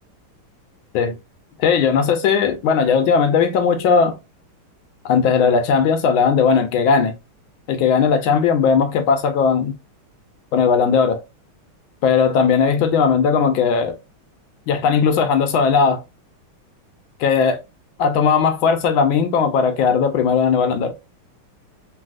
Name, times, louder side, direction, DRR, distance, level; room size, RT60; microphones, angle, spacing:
voice 1, 1.6-4.2 5.0-7.1 7.7-9.7 10.5-11.2 12.0-14.0 14.7-16.0 17.2-17.6 18.0-20.9, left 6 dB, 75° left, 1.3 m, -17 dB
3.3 x 2.6 x 2.4 m
omnidirectional pair, 2.4 m